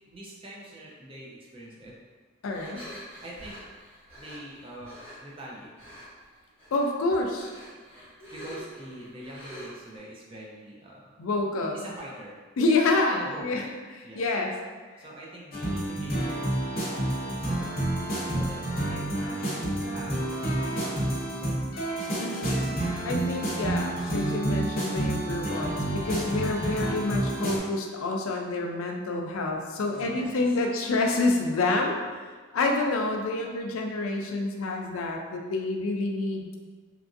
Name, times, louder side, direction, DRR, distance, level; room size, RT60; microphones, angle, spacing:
voice 1, 0.1-2.0 3.2-3.6 4.2-5.9 6.3-6.4 8.3-11.1 11.7-12.4 13.1-13.7 14.0-14.2 15.0-17.7 18.2-21.6 29.9-30.6 33.4-33.5, right 1 dB, 25° right, -4 dB, 0.5 m, -44 dB
voice 2, 2.4-2.8 6.7-7.5 11.2-11.8 12.6-13.6 14.1-14.5 22.2-32.0 32.5-36.5, left 2 dB, 85° left, 2 dB, 0.4 m, -28 dB
sound 1, 2.5-5.2 5.8-6.3 6.6-10.0, equal, 5° left, 1.1 m, -45 dB
sound 2, 15.5-27.6, right 1 dB, 45° left, 0.6 m, -29 dB
2.9 x 2.5 x 2.5 m, 1.4 s
head